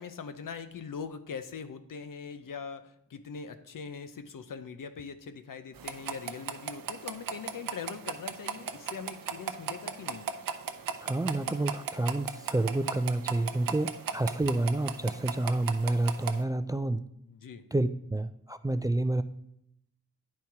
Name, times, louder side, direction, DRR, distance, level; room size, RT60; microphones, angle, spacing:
voice 1, 0.0-10.3 17.3-17.6, left 6 dB, 75° left, 10 dB, 0.7 m, -42 dB
sound 1, 5.8-16.4, right 7 dB, 85° right, 0.6 m, -38 dB
voice 2, 11.0-17.1 17.7-19.2, right 2 dB, 10° right, 12 dB, 0.3 m, -29 dB
9.5 x 4.3 x 4.8 m, 0.77 s
cardioid pair, 55°, 33 cm